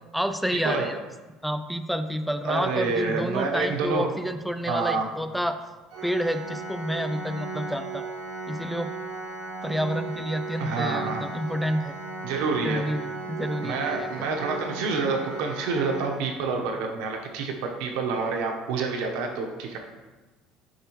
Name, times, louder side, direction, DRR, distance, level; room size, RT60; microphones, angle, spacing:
voice 1, 0.1-1.0 1.4-5.6 6.0-8.1 8.5-8.9 9.6-11.9 12.6-14.1, equal, ahead, 8 dB, 0.3 m, -29 dB
voice 2, 2.4-4.1 4.7-5.1 10.6-11.3 12.2-12.8 13.6-19.8, right 4 dB, 85° right, 2 dB, 0.9 m, -28 dB
Organ, 5.9-16.8, right 3 dB, 55° right, 0.8 m, -36 dB
6.6 x 4.8 x 3.1 m, 1.2 s
cardioid pair, 135°, 0 cm